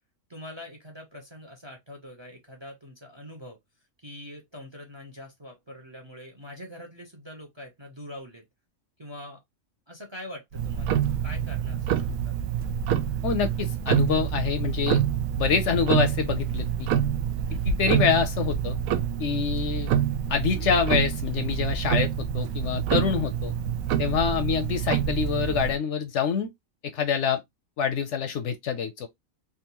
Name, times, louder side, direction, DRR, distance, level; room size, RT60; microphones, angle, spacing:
voice 1, 0.3-3.6 4.0-8.4 9.0-9.4 9.9-12.4 17.5-17.7, left 1 dB, 25° right, 0.6 m, -44 dB
Tick-tock, 10.5-25.8, right 9 dB, 85° right, 1.0 m, -27 dB
voice 2, 13.2-15.0 15.4-16.9 17.6-18.8 19.2-19.9 20.3-23.5 24.0-26.5 26.9-27.4 27.8-29.1, left 7 dB, 70° left, 0.8 m, -26 dB
3.5 x 2.7 x 2.8 m
omnidirectional pair, 1.4 m